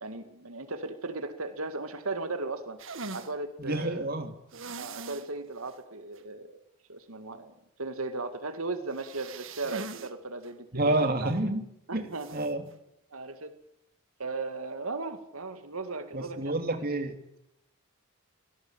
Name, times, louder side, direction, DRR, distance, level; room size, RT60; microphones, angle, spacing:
voice 1, 0.0-2.8 3.1-4.1 4.8-6.6 6.9-7.5 7.8-10.9 11.2-11.3 11.9-12.4 13.1-13.6 14.2-16.7, right 3 dB, 75° right, 9 dB, 2.1 m, -36 dB
sound 1, 2.8-3.3 4.5-5.3 5.7-5.8 6.2-6.3 8.9-10.1 10.4-10.5 12.2-12.5, right 3 dB, 60° right, 1.8 m, -41 dB
voice 2, 3.6-4.3 10.7-11.6 11.9-12.1 12.3-12.6 16.1-17.1, right 2 dB, 40° right, 7 dB, 2.7 m, -28 dB
25.0 x 18.5 x 8.9 m, 0.79 s
head